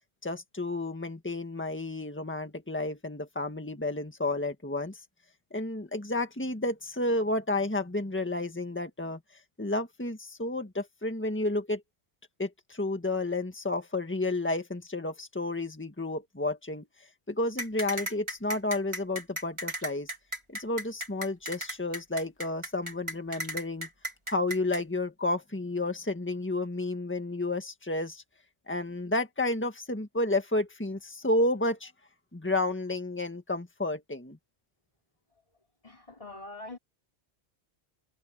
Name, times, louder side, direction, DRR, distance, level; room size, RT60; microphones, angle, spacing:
voice 1, 0.2-5.0 5.5-9.2 9.6-11.8 12.4-16.9 17.3-20.1 20.5-23.9 24.3-28.2 28.7-31.9 32.3-34.4, left 2 dB, 10° left, 1.7 m, -31 dB
sound 1, 17.6-24.8, equal, 25° right, 4.1 m, -35 dB
voice 2, 35.8-36.8, left 2 dB, 30° left, 5.5 m, -43 dB
omnidirectional pair, 1.1 m